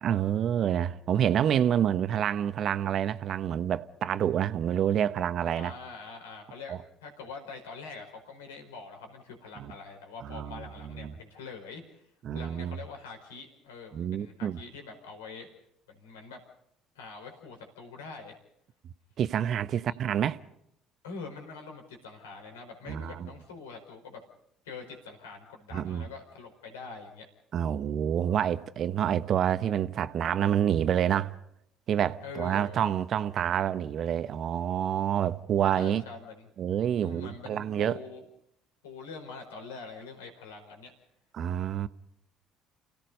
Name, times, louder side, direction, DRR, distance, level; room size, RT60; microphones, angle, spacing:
voice 1, 0.0-5.7 6.7-6.8 9.6-9.7 10.2-11.1 12.2-12.8 13.9-14.6 19.2-20.4 22.9-23.3 25.7-26.1 27.5-31.4 31.9-36.0 36.6-38.0 41.3-41.9, right 9 dB, 55° right, 1.1 m, -28 dB
voice 2, 5.5-15.5 15.9-16.4 16.9-18.3 19.9-20.0 21.0-24.2 24.6-27.3 32.2-32.8 35.7-36.5 37.0-38.2 38.8-40.9, left 4 dB, 85° left, 4.9 m, -44 dB
30.0 x 17.0 x 5.3 m
hypercardioid pair, 60°, 0 cm